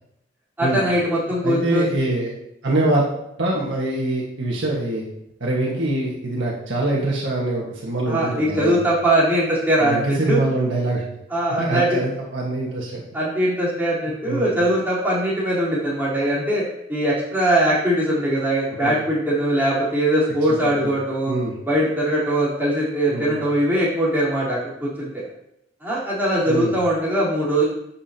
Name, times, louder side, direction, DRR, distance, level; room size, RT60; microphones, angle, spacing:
voice 1, 0.6-1.9 8.1-10.4 11.3-11.9 13.1-16.6 16.9-21.3 21.7-25.1 25.8-27.6, right 1 dB, 10° right, -9 dB, 3.9 m, -21 dB
voice 2, 1.4-2.3 2.6-3.0 3.4-5.0 5.4-8.8 9.8-11.0 11.6-13.0 14.2-14.6 18.8-19.0 20.6-20.9 21.3-21.5 23.1-23.4 26.5-26.8, right 2 dB, 75° right, -4 dB, 1.7 m, -24 dB
11.5 x 7.3 x 2.9 m, 0.80 s
head